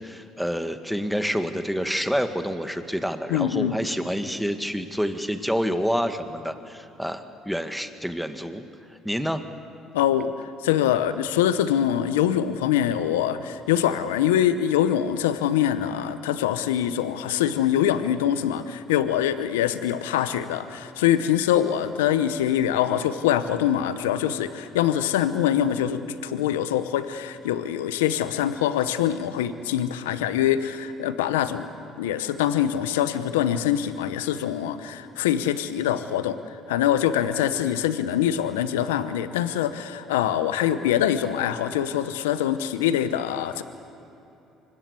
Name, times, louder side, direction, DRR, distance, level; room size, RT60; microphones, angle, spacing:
voice 1, 0.0-8.6 9.0-9.4, equal, ahead, 7 dB, 1.9 m, -28 dB
voice 2, 3.3-3.8 9.9-31.7 32.0-36.4 36.7-43.6, left 10 dB, 90° left, 12 dB, 0.8 m, -24 dB
25.0 x 20.5 x 8.3 m, 2.9 s
hypercardioid pair, 60°, 0 cm